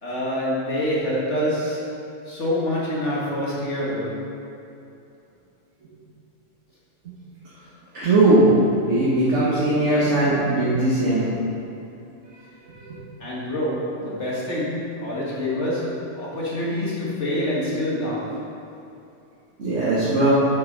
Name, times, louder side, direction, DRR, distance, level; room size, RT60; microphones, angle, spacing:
voice 1, 0.0-2.0 2.3-4.3 13.2-18.4, left 1 dB, 65° left, -6 dB, 2.2 m, -26 dB
voice 2, 7.9-8.5 8.9-11.3 12.7-13.0 19.6-20.4, right 2 dB, 70° right, -9 dB, 2.0 m, -19 dB
7.9 x 7.2 x 5.4 m, 2.8 s
omnidirectional pair, 1.3 m